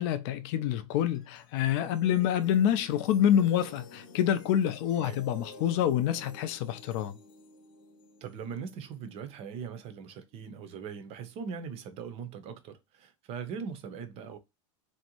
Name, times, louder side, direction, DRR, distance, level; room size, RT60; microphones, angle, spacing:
voice 1, 0.0-7.2, left 10 dB, 50° left, 0.4 m, -27 dB
sound 1, 0.9-10.2, left 4 dB, 75° left, 0.8 m, -52 dB
voice 2, 5.0-5.3 8.2-14.4, right 6 dB, 35° right, 0.6 m, -40 dB
2.6 x 2.1 x 2.8 m
supercardioid pair, 125°, 17 cm